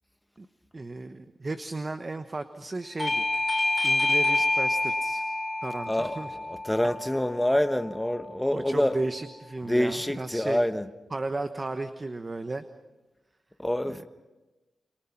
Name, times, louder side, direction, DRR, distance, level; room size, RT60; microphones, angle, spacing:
voice 1, 0.7-3.3 3.8-5.2 5.6-6.4 8.5-10.6 11.1-12.6 13.9-14.0, right 2 dB, 35° right, 1.1 m, -34 dB
Bell / Doorbell, 3.0-8.2, left 2 dB, 30° left, 1.1 m, -28 dB
voice 2, 5.9-9.0 9.7-10.9 13.6-14.1, left 1 dB, 10° left, 1.2 m, -26 dB
28.0 x 23.5 x 5.9 m
cardioid pair, 65°, 0 cm